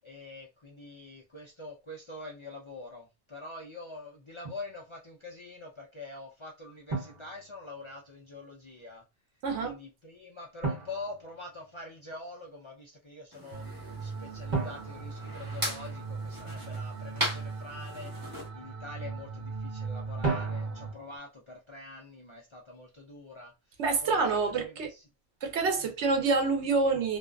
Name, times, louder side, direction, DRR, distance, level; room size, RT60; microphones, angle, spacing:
voice 1, 0.0-9.0 9.6-18.1 18.5-25.0 25.7-25.9, left 2 dB, 45° left, 0.4 m, -45 dB
Drum, 4.4-4.7 6.9-8.0 10.6-12.0 14.5-16.2 20.2-21.2, right 3 dB, 45° right, 1.1 m, -36 dB
voice 2, 9.4-9.8 23.8-24.9 25.4-27.2, right 4 dB, 85° right, 1.0 m, -27 dB
sound 1, 13.3-18.5, equal, 20° right, 1.1 m, -38 dB
sound 2, 13.5-20.9, right 4 dB, 60° right, 0.7 m, -39 dB
2.5 x 2.4 x 2.2 m
omnidirectional pair, 1.1 m